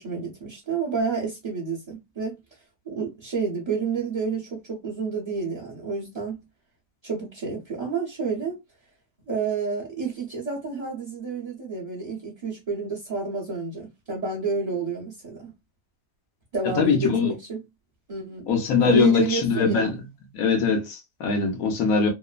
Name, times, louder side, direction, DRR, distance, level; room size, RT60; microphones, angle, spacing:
voice 1, 0.0-2.4 2.9-6.4 7.0-8.6 9.3-15.5 16.5-17.6 18.1-18.5 18.8-19.9, right 4 dB, 35° right, 0.6 m, -29 dB
voice 2, 16.8-17.3 18.5-19.9 20.3-22.1, left 5 dB, 75° left, 1.2 m, -22 dB
3.0 x 2.0 x 2.3 m
omnidirectional pair, 1.5 m